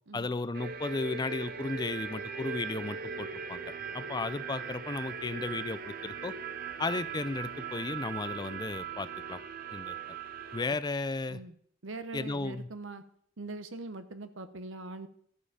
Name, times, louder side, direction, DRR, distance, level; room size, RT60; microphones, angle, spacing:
voice 1, 0.1-3.6 3.9-6.3 6.8-9.4 9.7-10.0 10.5-11.4 12.1-12.7, left 3 dB, 20° left, 14 dB, 0.4 m, -34 dB
sound 1, 0.5-10.6, right 6 dB, 50° right, 0.8 m, -39 dB
voice 2, 11.8-13.0 13.4-15.1, right 2 dB, 70° right, 11 dB, 0.9 m, -42 dB
13.0 x 7.6 x 4.9 m, 0.65 s
head